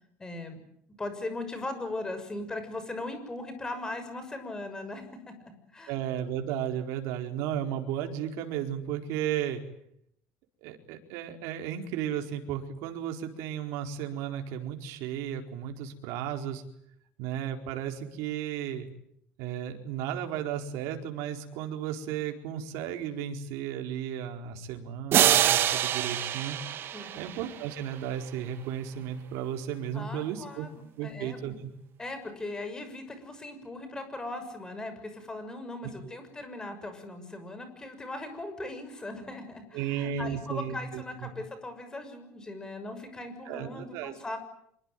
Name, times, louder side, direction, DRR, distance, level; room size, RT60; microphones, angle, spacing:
voice 1, 0.2-0.6 1.0-5.3 5.7-5.9 26.9-27.3 29.9-31.4 32.0-44.4, left 2 dB, 15° left, 9 dB, 6.3 m, -39 dB
voice 2, 5.9-9.6 10.6-16.6 17.2-18.9 19.4-26.6 27.2-30.7 31.0-31.7 36.0-36.2 39.7-41.3 43.5-44.1, right 9 dB, 75° right, 4 dB, 4.4 m, -34 dB
sound 1, 25.1-27.8, right 11 dB, 45° right, 1.8 m, -25 dB
26.5 x 22.5 x 9.2 m, 0.72 s
cardioid pair, 140°, 5 cm